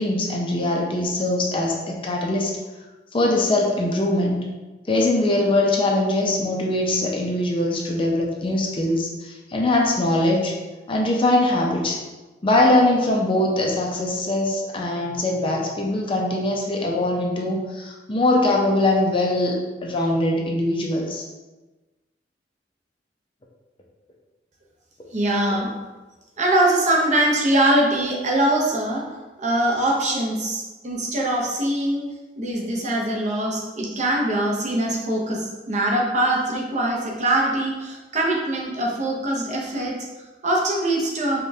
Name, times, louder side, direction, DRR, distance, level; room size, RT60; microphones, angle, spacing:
voice 1, 0.0-2.6 3.1-4.5 4.9-10.5 10.9-12.0 12.4-21.2, left 1 dB, 30° left, -1 dB, 0.5 m, -22 dB
voice 2, 25.1-25.7 26.4-29.1 29.4-32.1 32.4-41.4, right 1 dB, 40° right, -2 dB, 0.7 m, -22 dB
5.0 x 2.3 x 2.7 m, 1.2 s
head